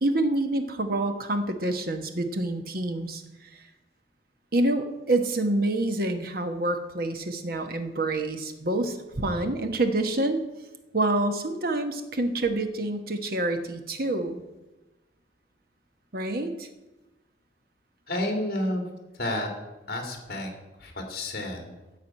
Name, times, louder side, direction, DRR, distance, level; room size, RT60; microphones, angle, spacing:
voice 1, 0.0-3.6 4.5-10.4 10.9-14.4 16.1-16.7, right 2 dB, 55° right, 6 dB, 1.2 m, -27 dB
voice 2, 18.1-18.8 19.1-19.5 19.9-20.5 20.8-21.7, left 1 dB, 55° left, 3 dB, 2.3 m, -30 dB
13.5 x 4.8 x 8.5 m, 1.1 s
head